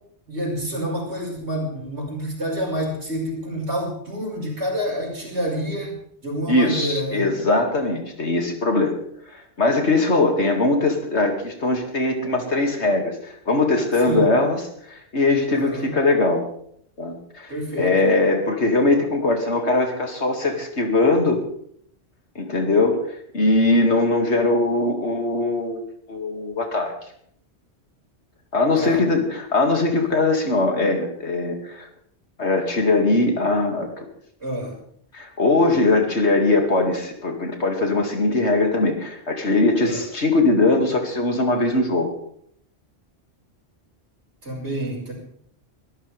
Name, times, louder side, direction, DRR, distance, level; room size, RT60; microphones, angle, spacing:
voice 1, 0.3-7.3 14.0-14.3 15.5-15.9 17.5-17.9 28.8-29.0 34.4-34.8 39.8-40.0 44.4-45.1, equal, 75° right, -1 dB, 5.7 m, -28 dB
voice 2, 6.5-9.0 9.3-14.6 14.9-16.4 17.0-21.4 22.3-25.8 26.1-26.9 28.5-31.9 32.4-34.1 35.1-42.2, left 2 dB, 80° left, 3 dB, 2.7 m, -21 dB
22.0 x 14.0 x 3.5 m, 0.67 s
omnidirectional pair, 1.1 m